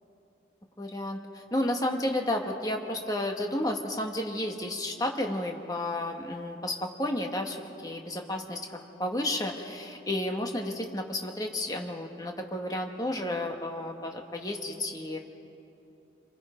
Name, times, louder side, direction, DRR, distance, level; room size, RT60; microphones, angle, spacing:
voice 1, 0.8-7.6 7.8-8.6 9.0-15.2, left 1 dB, 20° left, 2 dB, 1.5 m, -32 dB
29.5 x 23.0 x 5.2 m, 2.8 s
head